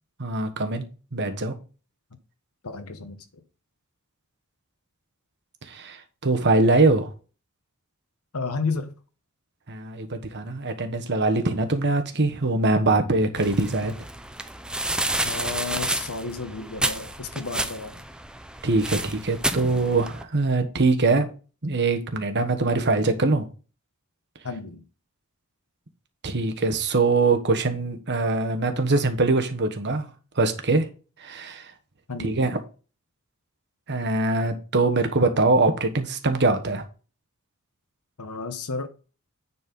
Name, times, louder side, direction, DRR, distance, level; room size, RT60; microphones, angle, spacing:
voice 1, 0.2-1.5 5.7-7.1 9.7-13.9 18.6-21.3 21.6-23.4 26.2-30.1 30.4-30.9 31.2-31.7 32.2-32.6 33.9-36.8, right 3 dB, 55° right, 1.3 m, -23 dB
voice 2, 2.6-3.4 8.3-8.9 15.2-18.0 24.4-24.8 32.1-32.4 38.2-38.9, left 4 dB, 90° left, 1.2 m, -32 dB
sound 1, 13.4-20.2, right 1 dB, 5° right, 0.6 m, -30 dB
9.7 x 4.4 x 5.3 m
head